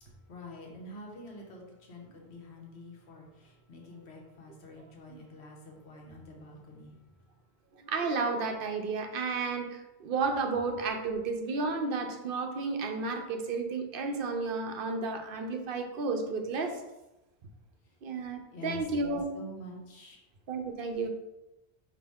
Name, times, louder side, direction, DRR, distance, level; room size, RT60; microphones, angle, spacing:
voice 1, 0.0-7.0 18.5-20.2, left 1 dB, 80° left, 0 dB, 1.2 m, -47 dB
voice 2, 7.7-16.8 18.0-19.2 20.5-21.1, right 4 dB, 60° right, 5 dB, 0.7 m, -32 dB
5.2 x 2.9 x 3.5 m, 0.96 s
omnidirectional pair, 1.1 m